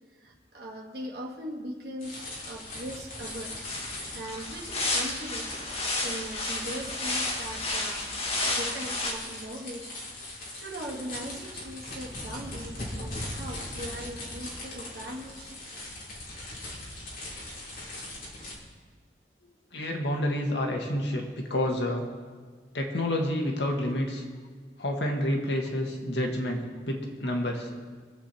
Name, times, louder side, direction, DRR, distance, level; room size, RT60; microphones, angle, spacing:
voice 1, 0.1-3.7 4.1-5.6 6.0-8.1 8.4-9.9 10.3-15.6, right 1 dB, 60° right, -3 dB, 2.3 m, -40 dB
sound 1, 2.0-18.6, left 1 dB, 50° left, 3.4 m, -40 dB
sound 2, 3.1-9.1, left 2 dB, 35° left, 1.9 m, -32 dB
voice 2, 19.7-22.1 22.7-24.2 24.8-27.7, left 1 dB, 80° left, 1 dB, 1.8 m, -29 dB
23.5 x 8.0 x 4.4 m, 1.5 s
head